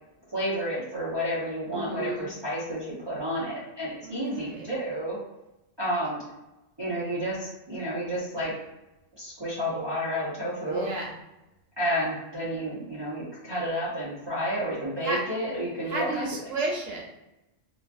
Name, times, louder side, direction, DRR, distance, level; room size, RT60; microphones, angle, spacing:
voice 1, 0.3-5.2 5.8-6.2 6.8-8.5 9.1-10.9 11.8-16.3, equal, 25° right, -10 dB, 0.9 m, -30 dB
voice 2, 1.7-2.3 4.0-4.7 10.6-11.2 15.0-15.2 15.8-17.1, right 2 dB, 85° right, -1 dB, 1.2 m, -32 dB
3.0 x 2.4 x 2.6 m, 0.95 s
omnidirectional pair, 1.3 m